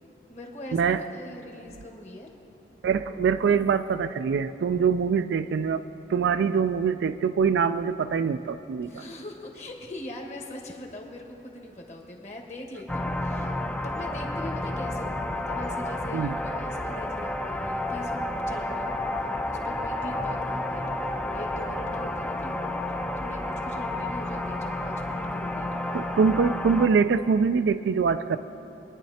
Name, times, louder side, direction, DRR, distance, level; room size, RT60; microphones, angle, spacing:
voice 1, 0.0-2.3 8.8-13.5 13.8-19.0 19.4-22.6 23.2-26.0, left 1 dB, 40° left, 1 dB, 1.6 m, -41 dB
voice 2, 0.7-1.0 2.8-5.8 6.1-9.0 16.1-16.3 25.9-28.4, right 6 dB, 80° right, 10 dB, 0.3 m, -24 dB
sound 1, 12.9-26.9, left 1 dB, 5° left, 0.4 m, -31 dB
24.0 x 10.5 x 2.8 m, 2.9 s
head